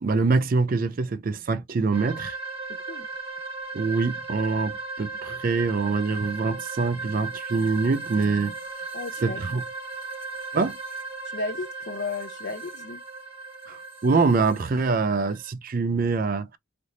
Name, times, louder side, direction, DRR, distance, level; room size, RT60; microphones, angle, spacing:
voice 1, 0.0-2.4 3.7-8.6 9.2-9.6 10.5-10.8 13.7-16.6, right 4 dB, 40° right, 0.4 m, -24 dB
sound 1, 1.9-15.5, right 4 dB, 25° right, 1.1 m, -37 dB
voice 2, 8.9-9.4 11.3-13.0, left 3 dB, 55° left, 0.6 m, -34 dB
3.3 x 2.6 x 2.7 m
head